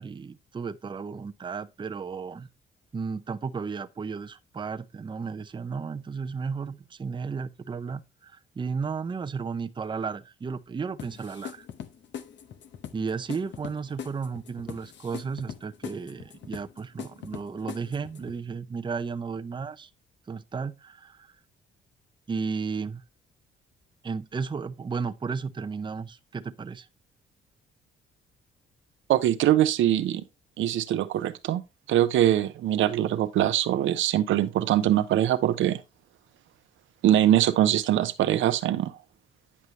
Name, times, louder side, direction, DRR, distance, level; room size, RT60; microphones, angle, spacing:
voice 1, 0.0-2.5 2.9-11.7 12.9-19.9 20.3-21.3 22.3-23.0 24.0-26.9, right 5 dB, 25° right, 0.6 m, -34 dB
sound 1, 11.0-18.4, left 8 dB, 65° left, 0.9 m, -41 dB
voice 2, 29.1-30.2 30.6-31.6 31.9-35.8 37.0-38.9, right 12 dB, 80° right, 0.8 m, -23 dB
9.5 x 5.5 x 3.2 m
cardioid pair, 90°, 20 cm